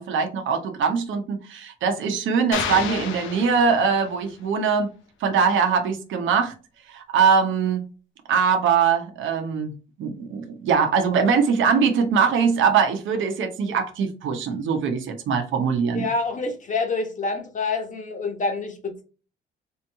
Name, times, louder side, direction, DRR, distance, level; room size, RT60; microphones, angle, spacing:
voice 1, 0.0-4.9 5.2-6.5 6.9-7.9 8.3-9.7 10.0-16.1, right 6 dB, 75° right, 0.9 m, -22 dB
sound 1, 2.5-4.2, left 7 dB, 85° left, 0.7 m, -31 dB
voice 2, 15.9-19.0, left 3 dB, 40° left, 1.2 m, -27 dB
3.6 x 3.0 x 3.4 m
cardioid pair, 90°, 20 cm